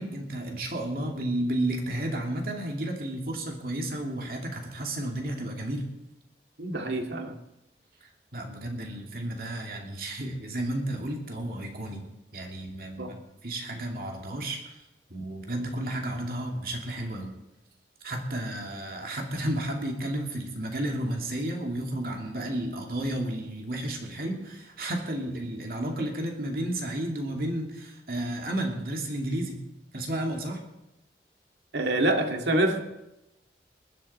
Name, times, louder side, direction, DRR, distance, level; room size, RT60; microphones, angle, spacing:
voice 1, 0.0-5.9 8.3-12.0 12.3-13.2 13.4-14.8 15.1-17.4 18.0-29.6 29.9-30.6, right 1 dB, 55° right, 1 dB, 2.5 m, -32 dB
voice 2, 6.6-7.4 13.0-13.2 31.7-32.8, right 1 dB, 80° right, 4 dB, 2.1 m, -26 dB
20.5 x 12.5 x 4.3 m, 0.94 s
head